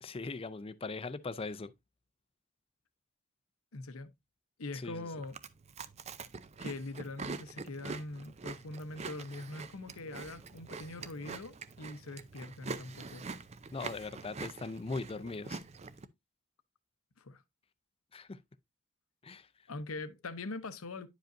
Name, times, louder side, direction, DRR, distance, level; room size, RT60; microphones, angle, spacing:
voice 1, 0.0-1.7 4.8-5.0 13.7-15.6 18.1-18.4 19.2-19.5, left 3 dB, 25° left, 0.5 m, -40 dB
voice 2, 3.7-4.1 4.6-5.4 6.6-13.3 17.2-17.4 19.7-21.1, left 2 dB, 80° left, 0.8 m, -42 dB
Chewing mastication, 5.2-16.0, right 4 dB, 30° right, 0.5 m, -45 dB
10.5 x 5.1 x 2.6 m
head